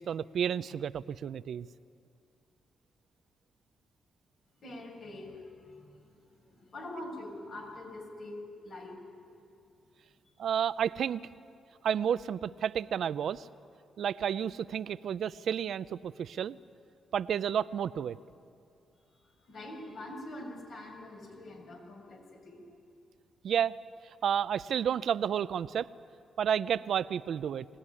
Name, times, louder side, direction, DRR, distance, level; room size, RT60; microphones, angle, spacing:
voice 1, 0.0-1.7 10.4-11.2 11.8-13.5 14.0-16.6 17.1-18.2 23.4-23.8 24.2-25.9 26.4-27.6, right 8 dB, 70° right, 16 dB, 0.5 m, -31 dB
voice 2, 4.6-8.4 8.6-9.0 19.2-22.6, left 1 dB, 65° left, 1 dB, 6.5 m, -45 dB
22.5 x 17.0 x 9.8 m, 2.4 s
cardioid pair, 70°, 0 cm